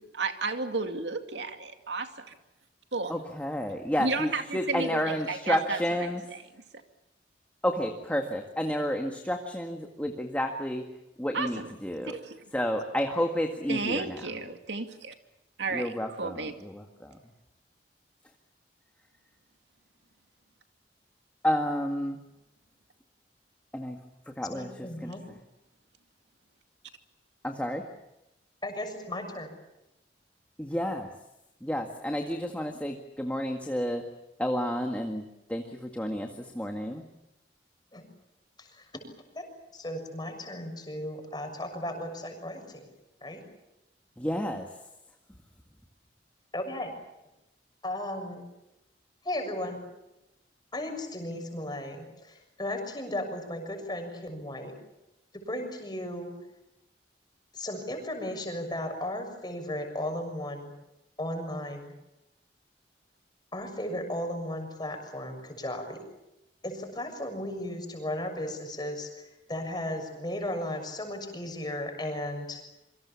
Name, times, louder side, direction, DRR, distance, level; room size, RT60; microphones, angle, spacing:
voice 1, 0.0-2.3 2.9-3.1 4.0-6.1 11.3-11.7 12.0-12.4 13.7-15.1 15.6-16.5, right 3 dB, 85° right, 6 dB, 2.3 m, -33 dB
voice 2, 3.1-6.2 7.6-10.9 11.2-12.2 12.5-14.3 15.7-17.2 21.4-22.2 23.7-24.0 24.3-25.2 27.4-27.9 30.6-31.2 31.6-34.0 34.4-37.1 44.2-44.8, equal, 10° left, 3 dB, 1.9 m, -31 dB
voice 3, 24.5-25.2 28.6-29.6 37.9-38.1 38.6-39.0 39.3-39.5 39.7-42.9 43.2-43.4 46.5-46.9 47.8-48.5 49.2-49.8 50.7-54.7 55.3-56.3 57.5-60.7 61.2-61.9 63.5-66.0 66.6-72.6, left 1 dB, 25° left, 5 dB, 6.7 m, -35 dB
27.5 x 24.5 x 7.2 m, 0.91 s
head